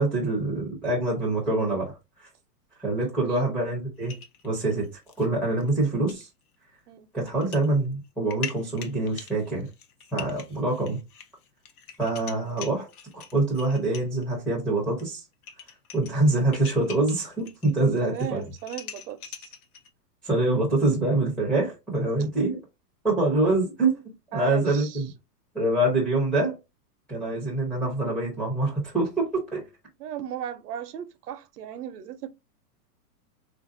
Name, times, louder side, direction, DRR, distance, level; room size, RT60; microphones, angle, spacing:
voice 1, 0.0-1.9 2.8-4.1 4.4-4.9 5.2-6.3 7.1-9.7 10.1-11.0 12.0-12.9 13.1-15.2 15.9-18.4 20.2-22.6 23.0-24.0 24.3-25.1 25.5-26.6 27.1-29.7, right 2 dB, ahead, 0.4 m, -25 dB
sound 1, 4.0-5.3 5.6-5.7 6.1-6.2 7.3-7.7 8.0-14.2 15.0-15.1 15.3-17.7 18.0-19.9, left 8 dB, 65° left, 0.8 m, -43 dB
voice 2, 18.0-19.5 24.3-25.1 30.0-32.3, right 9 dB, 70° right, 0.7 m, -36 dB
3.4 x 2.5 x 2.5 m
hypercardioid pair, 140°, 48 cm